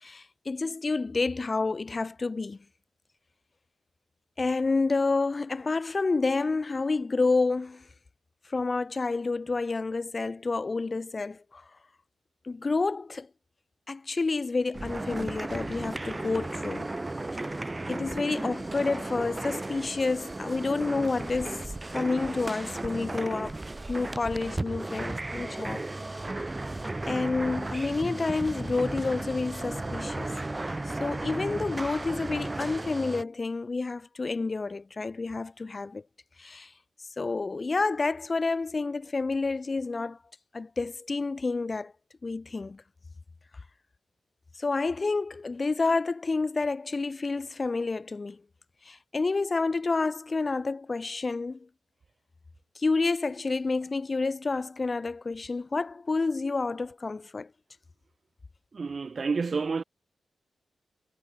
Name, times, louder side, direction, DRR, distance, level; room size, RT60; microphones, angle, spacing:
voice 1, 0.0-2.6 4.4-7.9 8.5-11.6 12.4-13.3 13.9-16.9 17.9-23.6 23.9-25.9 27.1-30.7 31.0-36.0 36.4-36.7 37.2-40.2 40.5-41.9 42.2-42.8 44.6-48.4 48.8-51.7 52.7-57.5, left 3 dB, 40° left, 3.2 m, -29 dB
sound 1, 14.7-33.2, right 2 dB, 25° right, 1.9 m, -35 dB
voice 2, 58.7-59.8, right 4 dB, 50° right, 2.7 m, -29 dB
cardioid pair, 55°, 0 cm